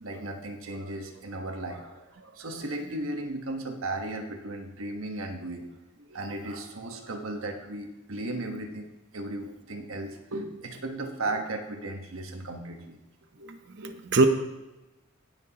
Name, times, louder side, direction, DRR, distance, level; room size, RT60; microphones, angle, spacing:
voice 1, 0.0-5.7 6.0-13.0 13.3-13.5 13.8-13.9, right 2 dB, 70° right, 4 dB, 1.3 m, -36 dB
voice 2, 13.5-14.3, right 3 dB, 55° right, 7 dB, 0.7 m, -24 dB
16.5 x 6.3 x 2.9 m, 1.0 s
head